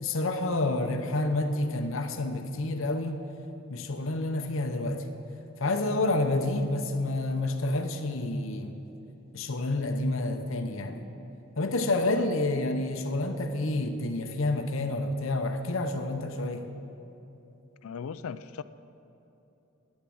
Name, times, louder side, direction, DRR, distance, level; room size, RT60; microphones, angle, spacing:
voice 1, 0.0-3.2 3.7-5.0 5.6-8.8 9.3-11.1 11.6-16.7, left 2 dB, 65° left, 6 dB, 0.8 m, -29 dB
voice 2, 17.8-18.6, left 6 dB, 85° left, 14 dB, 0.4 m, -38 dB
10.5 x 9.9 x 7.7 m, 2.9 s
head